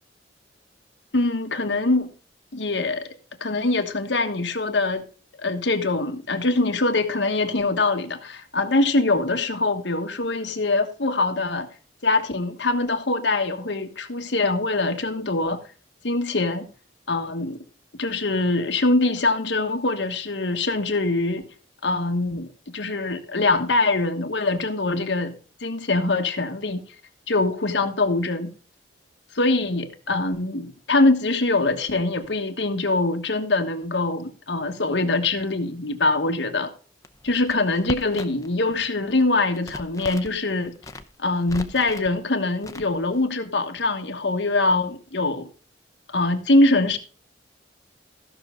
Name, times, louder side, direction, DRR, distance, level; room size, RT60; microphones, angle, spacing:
voice 1, 1.1-2.1 2.5-3.1 3.4-5.0 5.4-11.7 12.0-15.6 16.0-16.7 17.1-17.6 18.0-21.4 21.8-25.3 25.6-26.8 27.3-28.5 29.3-36.7 37.2-40.7 41.2-45.5 46.1-47.0, left 2 dB, 85° left, 1.3 m, -23 dB
Crackle, 37.0-38.5 38.8-40.4 40.8-42.1 42.6-43.2, left 2 dB, 20° left, 0.6 m, -37 dB
15.0 x 6.1 x 3.7 m
head